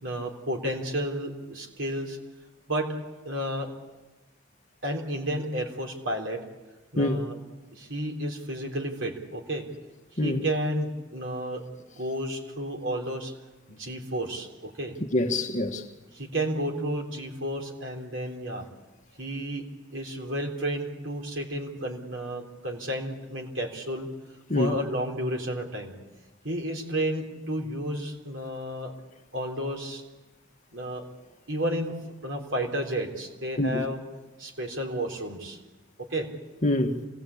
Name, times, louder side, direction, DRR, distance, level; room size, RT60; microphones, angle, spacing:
voice 1, 0.0-2.2 2.7-2.9 3.2-3.7 4.8-6.4 6.9-7.4 7.7-9.7 10.1-11.6 12.0-13.3 13.7-15.0 16.1-18.7 19.2-19.6 19.9-24.1 24.6-25.9 26.4-28.9 29.3-30.0 30.7-31.0 31.5-32.0 32.2-34.0 34.4-35.6 36.1-36.3, right 1 dB, 70° right, 3.8 m, -31 dB
voice 2, 15.1-15.8 24.5-24.7 33.6-33.8 36.6-37.0, left 1 dB, 40° left, 1.5 m, -25 dB
27.0 x 18.0 x 8.5 m
head